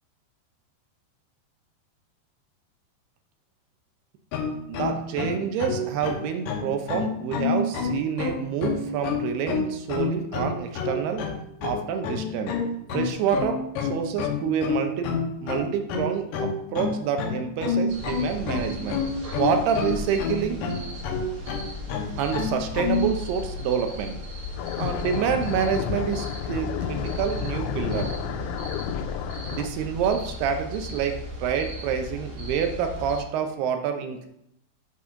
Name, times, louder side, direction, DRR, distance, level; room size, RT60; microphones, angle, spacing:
sound 1, 4.3-23.1, left 6 dB, 70° left, 2.3 m, -28 dB
voice 1, 4.7-11.2 11.6-12.5 12.9-15.1 15.4-19.0 19.4-20.6 22.2-24.2 24.8-28.1 29.5-34.3, right 7 dB, 75° right, 5 dB, 2.6 m, -27 dB
sound 2, 17.9-33.2, left 2 dB, 50° right, 1.8 m, -36 dB
sound 3, 24.6-29.7, left 10 dB, 85° left, 2.8 m, -31 dB
8.4 x 4.1 x 6.3 m, 0.77 s
omnidirectional pair, 5.0 m